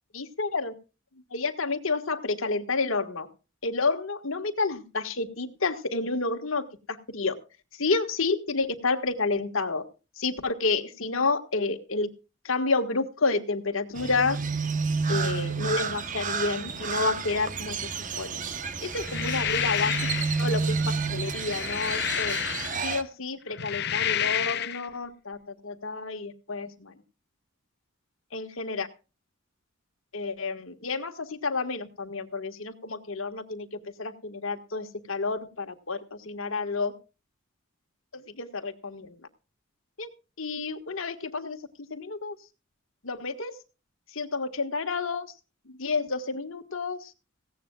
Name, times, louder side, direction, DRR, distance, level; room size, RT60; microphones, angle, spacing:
voice 1, 0.1-0.7 1.3-3.3 3.6-7.4 7.8-9.8 10.2-12.1 12.5-14.4 15.1-17.9 18.2-18.4 18.8-19.9 20.4-22.4 22.8-25.4 25.6-26.9 28.3-28.9 30.1-33.7 34.0-36.0 36.3-36.9 38.1-39.1 40.0-40.1 40.4-41.6 41.9-42.4 43.0-43.5 44.2-45.3 45.8-47.1, left 3 dB, 75° left, 6 dB, 1.7 m, -30 dB
Crow, 13.9-23.0, right 4 dB, 40° right, 1.0 m, -30 dB
sound 1, 18.9-20.4 21.2-23.0 23.5-24.9, left 11 dB, 50° left, 0.7 m, -30 dB
18.0 x 16.5 x 2.4 m, 0.32 s
head